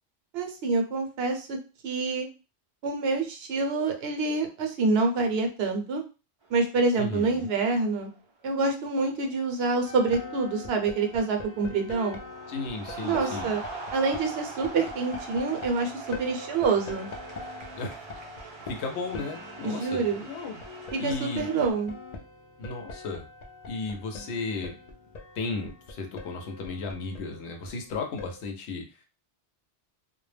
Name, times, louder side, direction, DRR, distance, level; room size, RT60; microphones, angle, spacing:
voice 1, 0.3-1.6 1.8-2.3 2.8-6.0 6.5-8.1 8.4-12.2 13.0-13.6 13.9-17.1 19.6-20.2 20.9-21.9, right 3 dB, 70° right, 4 dB, 0.8 m, -27 dB
sound 1, 6.4-6.9 7.2-7.7 8.6-8.8 9.2-11.5 11.8-21.7, right 3 dB, 45° right, 0.4 m, -42 dB
voice 2, 7.0-7.5 12.5-13.5 17.8-18.0 18.7-20.6 21.0-21.5 22.6-23.3 23.7-24.8 25.4-28.9, left 3 dB, 75° left, 3 dB, 0.9 m, -34 dB
sound 2, 9.8-28.5, left 3 dB, 55° left, 0.5 m, -43 dB
2.2 x 2.0 x 3.2 m, 0.32 s
omnidirectional pair, 1.1 m